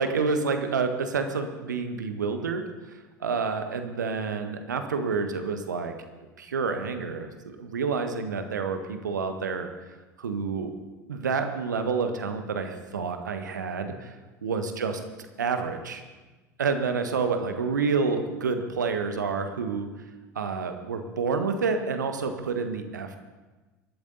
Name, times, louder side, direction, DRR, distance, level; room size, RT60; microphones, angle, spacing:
voice 1, 0.0-5.9 6.4-9.7 10.2-10.7 11.1-14.1 14.4-15.0 15.4-16.0 16.6-19.9 20.3-23.2, right 5 dB, 75° right, 7 dB, 1.4 m, -28 dB
23.0 x 12.0 x 4.0 m, 1.2 s
figure-of-eight pair, 70°, 10 cm